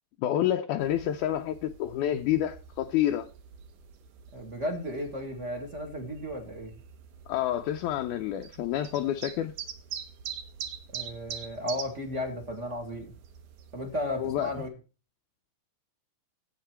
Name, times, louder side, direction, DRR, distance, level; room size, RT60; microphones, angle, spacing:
voice 1, 0.2-3.3 7.3-9.5 14.2-14.5, left 11 dB, 75° left, 1.9 m, -28 dB
sound 1, 0.8-14.7, right 8 dB, 70° right, 2.5 m, -45 dB
voice 2, 4.3-6.7 10.9-13.1 13.7-14.7, left 1 dB, 25° right, 1.7 m, -34 dB
12.5 x 8.3 x 4.5 m
omnidirectional pair, 3.9 m